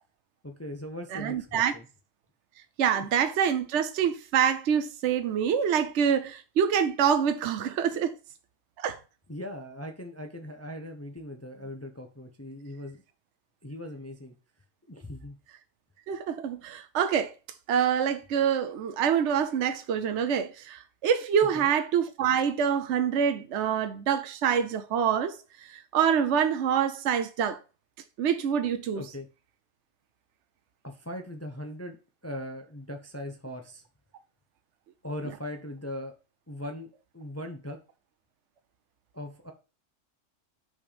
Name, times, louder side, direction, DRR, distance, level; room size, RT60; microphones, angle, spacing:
voice 1, 0.4-1.9 2.9-3.1 9.3-13.0 13.6-14.3 14.9-15.4 21.5-21.7 28.9-29.3 30.8-32.0 32.2-33.8 35.0-36.1 36.5-37.8 39.1-39.5, left 1 dB, 15° left, 0.8 m, -39 dB
voice 2, 1.1-1.7 2.8-8.1 8.8-9.0 16.1-17.3 17.7-27.6 28.2-29.0, right 8 dB, 65° right, 0.9 m, -26 dB
6.0 x 4.5 x 5.0 m
omnidirectional pair, 1.3 m